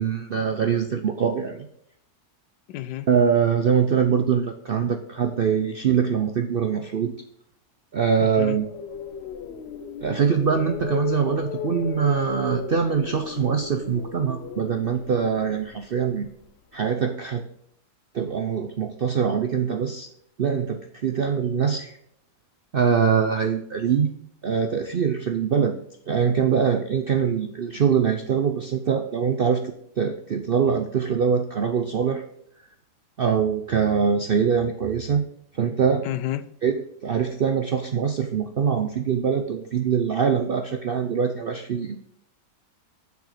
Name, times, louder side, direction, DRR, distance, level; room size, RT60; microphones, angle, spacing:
voice 1, 0.0-1.7 3.1-7.1 7.9-8.7 10.0-16.3 16.7-17.4 18.1-20.1 20.4-22.0 22.7-24.1 24.4-25.8 26.1-32.2 33.2-35.2 35.5-36.0 36.6-42.0, right 7 dB, 65° right, 6 dB, 0.5 m, -23 dB
voice 2, 2.7-3.1 8.2-8.6 36.0-36.5 40.4-40.5, left 13 dB, 85° left, 12 dB, 1.2 m, -31 dB
sound 1, 8.4-16.5, left 6 dB, 60° left, 0.7 m, -35 dB
7.2 x 6.3 x 4.9 m, 0.70 s
omnidirectional pair, 1.8 m